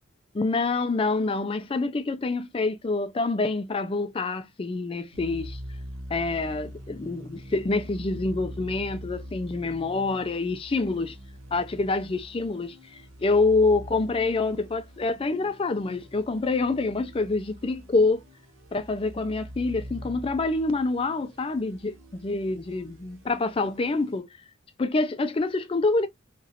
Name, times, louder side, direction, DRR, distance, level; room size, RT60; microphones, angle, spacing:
voice 1, 0.3-5.6 6.1-11.2 11.5-18.2 18.7-24.3 24.8-26.1, left 3 dB, 25° left, 0.4 m, -26 dB
sound 1, 5.1-24.2, equal, 75° right, 0.8 m, -43 dB
3.0 x 2.4 x 2.7 m
head